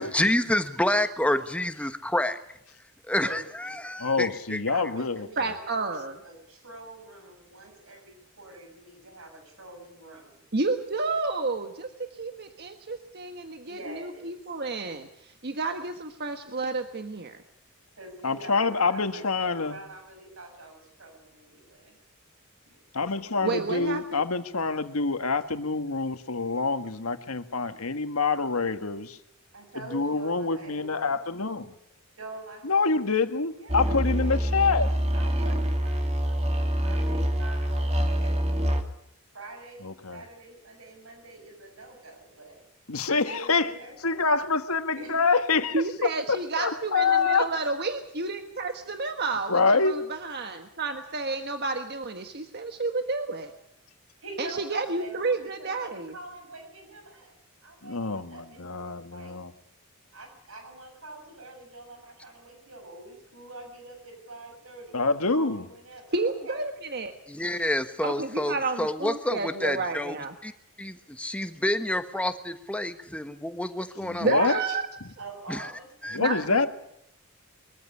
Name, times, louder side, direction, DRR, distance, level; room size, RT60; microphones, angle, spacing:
voice 1, 0.0-2.4 3.1-4.6 67.3-70.1 70.4-70.5 70.8-74.5 75.5-75.7 76.0-76.4, left 1 dB, 5° left, 9 dB, 1.3 m, -28 dB
voice 2, 3.1-3.8 4.7-10.4 13.6-14.3 18.0-22.0 22.7-22.8 29.5-31.1 32.2-33.1 33.6-34.5 35.1-38.8 39.3-42.6 43.1-44.3 44.9-45.1 54.2-59.3 60.1-66.6 75.2-76.7, right 2 dB, 70° right, 4 dB, 6.7 m, -45 dB
voice 3, 4.0-5.3 18.2-19.8 22.9-29.2 29.9-31.7 32.6-34.9 39.8-40.2 42.9-43.7 44.0-45.7 46.3-47.5 49.5-50.0 57.8-59.5 64.9-65.6 74.0-74.6 76.1-76.7, left 4 dB, 85° left, 9 dB, 1.7 m, -26 dB
voice 4, 5.4-6.1 10.5-17.4 23.4-24.2 45.7-53.5 54.4-56.1 66.1-67.1 68.0-70.3 74.2-74.9 76.2-76.7, right 3 dB, 50° right, 6 dB, 1.4 m, -31 dB
sound 1, 33.7-38.8, equal, 30° right, 2.5 m, -26 dB
23.0 x 14.0 x 9.9 m, 0.75 s
head